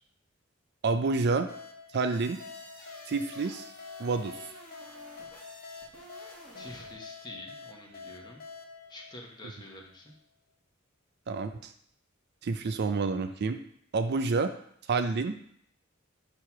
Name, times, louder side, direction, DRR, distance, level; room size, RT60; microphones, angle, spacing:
voice 1, 0.8-1.5 1.9-2.4 3.1-3.7 4.0-4.4 11.3-11.7 12.4-13.6 13.9-14.5 14.9-15.4, right 4 dB, 55° right, 9 dB, 0.4 m, -28 dB
sound 1, 1.5-9.9, left 5 dB, 50° left, 0.7 m, -47 dB
sound 2, 2.1-7.0, equal, 5° left, 2.0 m, -51 dB
voice 2, 6.6-8.4 8.9-10.2, left 1 dB, 20° left, 0 dB, 1.1 m, -47 dB
6.4 x 3.0 x 5.7 m, 0.68 s
head